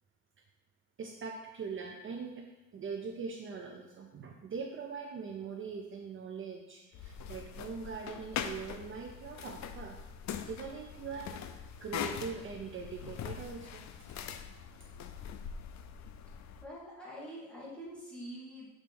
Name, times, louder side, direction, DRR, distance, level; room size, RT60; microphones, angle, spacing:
voice 1, 1.0-2.4 2.7-10.0 10.5-13.8, right 5 dB, 45° right, 1 dB, 0.5 m, -42 dB
sound 1, 6.9-16.6, left 8 dB, 65° left, 0.5 m, -42 dB
voice 2, 16.6-18.7, equal, 5° left, -6 dB, 1.5 m, -45 dB
6.1 x 3.2 x 5.3 m, 1.1 s
wide cardioid pair, 165°, 30 cm